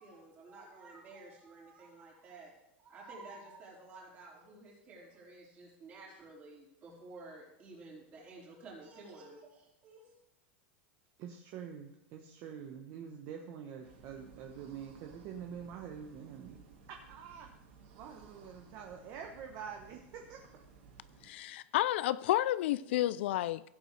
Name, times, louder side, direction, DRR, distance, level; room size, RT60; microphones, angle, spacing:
voice 1, 0.0-2.5 2.8-10.1, right 3 dB, 25° right, -5 dB, 4.3 m, -52 dB
voice 2, 11.2-16.6 16.9-17.5 17.9-20.6, right 7 dB, 40° right, 3 dB, 1.0 m, -46 dB
sound 1, 13.8-21.3, right 4 dB, 80° right, 3.5 m, -58 dB
voice 3, 21.2-23.6, left 14 dB, 70° left, 18 dB, 0.4 m, -31 dB
16.0 x 8.1 x 3.3 m, 0.86 s
supercardioid pair, 160°, 6 cm